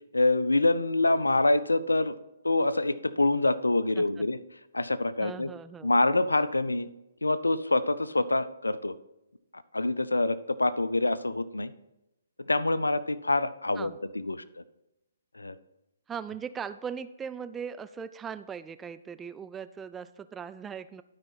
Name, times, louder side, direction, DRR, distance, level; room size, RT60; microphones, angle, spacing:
voice 1, 0.1-2.2 2.4-4.4 4.7-5.5 5.8-6.9 7.2-8.9 9.5-11.7 12.4-14.6 15.3-15.6, left 2 dB, 90° left, 16 dB, 0.5 m, -26 dB
voice 2, 5.2-5.9 13.8-14.0 16.1-21.0, right 7 dB, 10° right, 12 dB, 0.3 m, -39 dB
12.0 x 4.9 x 4.1 m, 0.92 s
figure-of-eight pair, 135°, 0 cm